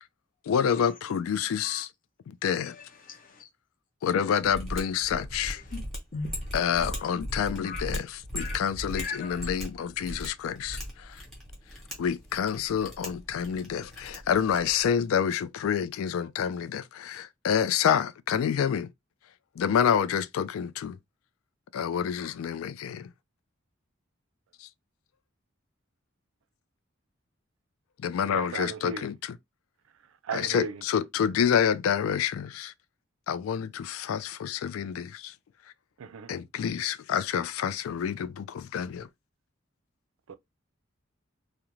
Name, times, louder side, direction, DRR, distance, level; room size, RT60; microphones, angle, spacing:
voice 1, 0.5-1.9 2.3-2.7 4.0-5.6 6.5-11.2 12.0-18.9 19.6-21.0 21.7-23.1 24.6-24.7 28.0-29.4 30.3-32.7 33.3-35.3 36.3-39.1, left 8 dB, 85° left, 0.3 m, -28 dB
voice 2, 2.6-3.5 5.7-5.8 6.1-7.1 7.6-7.8 8.4-8.6 8.9-9.5, left 4 dB, 40° left, 0.6 m, -39 dB
Mechanisms, 4.4-14.9, equal, ahead, 0.9 m, -38 dB
voice 3, 28.2-29.1 30.2-30.8 36.0-36.3 40.3-40.4, right 5 dB, 75° right, 0.4 m, -36 dB
2.5 x 2.0 x 2.9 m
head